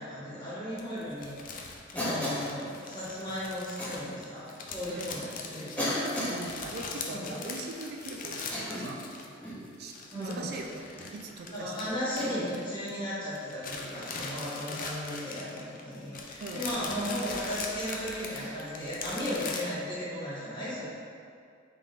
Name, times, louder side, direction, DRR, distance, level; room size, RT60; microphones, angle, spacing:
voice 1, 0.0-1.3 1.9-6.3 7.1-7.4 10.1-10.4 11.5-20.8, equal, 25° left, -11 dB, 1.1 m, -36 dB
sound 1, 0.8-9.5 9.7-13.1 13.3-19.6, left 4 dB, 45° left, 0.4 m, -41 dB
Cough, 2.0-2.5 3.8-4.0 4.9-5.0 5.8-6.4 8.4-9.0 9.4-9.7 10.8-11.1 12.2-12.5 14.0-14.3 16.5-16.7 18.4-18.5, left 1 dB, 10° left, 0.6 m, -34 dB
voice 2, 6.3-9.0 9.8-12.0 16.4-16.7, right 3 dB, 55° right, 2 dB, 0.3 m, -41 dB
4.0 x 3.6 x 2.4 m, 2.3 s
head